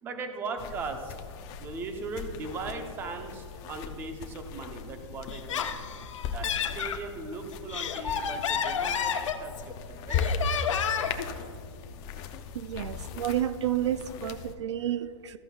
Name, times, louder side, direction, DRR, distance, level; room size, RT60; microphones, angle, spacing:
voice 1, 0.0-1.1 1.6-5.7 6.2-10.2, right 3 dB, 15° right, 5 dB, 0.7 m, -38 dB
sound 1, 0.6-14.6, left 5 dB, 20° left, 0.5 m, -38 dB
Laughter, 5.3-7.0 7.5-9.7 10.1-11.3, left 8 dB, 80° left, 1.0 m, -30 dB
voice 2, 12.5-15.4, right 11 dB, 65° right, 13 dB, 0.4 m, -30 dB
14.0 x 11.0 x 2.3 m, 2.4 s
hypercardioid pair, 165°, 16 cm